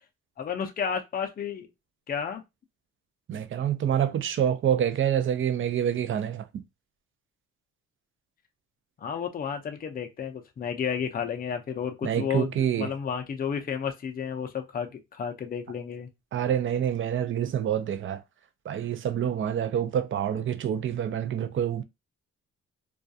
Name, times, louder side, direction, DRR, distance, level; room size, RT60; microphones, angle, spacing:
voice 1, 0.4-1.7 2.1-2.4 9.0-12.5 12.8-16.1, left 7 dB, 30° left, 0.5 m, -32 dB
voice 2, 3.3-6.6 12.0-12.9 16.3-18.2 18.7-21.8, right 9 dB, 45° right, 0.4 m, -27 dB
2.3 x 2.2 x 2.6 m
cardioid pair, 90°, 30 cm